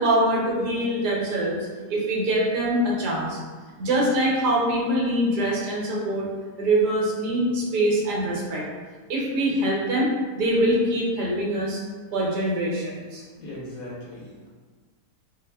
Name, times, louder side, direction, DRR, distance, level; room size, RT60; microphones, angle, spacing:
voice 1, 0.0-1.6 1.9-3.4 3.8-6.3 6.6-8.6 9.1-11.8 12.1-13.2, right 1 dB, 80° right, -4 dB, 1.3 m, -24 dB
voice 2, 13.4-14.5, left 1 dB, 65° left, -6 dB, 1.1 m, -38 dB
3.0 x 2.0 x 3.3 m, 1.4 s
omnidirectional pair, 1.7 m